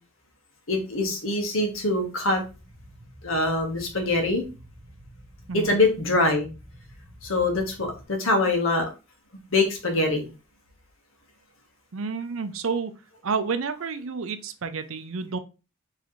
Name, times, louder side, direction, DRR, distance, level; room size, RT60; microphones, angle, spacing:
voice 1, 0.7-2.4 3.2-4.4 5.5-6.5 7.2-8.9 9.5-10.3, left 2 dB, 70° left, 2 dB, 1.4 m, -24 dB
sound 1, 2.4-8.0, equal, 30° right, 1.4 m, -49 dB
voice 2, 11.9-12.9 13.2-15.4, right 5 dB, 70° right, 10 dB, 0.5 m, -30 dB
4.8 x 3.2 x 3.1 m, 0.31 s
head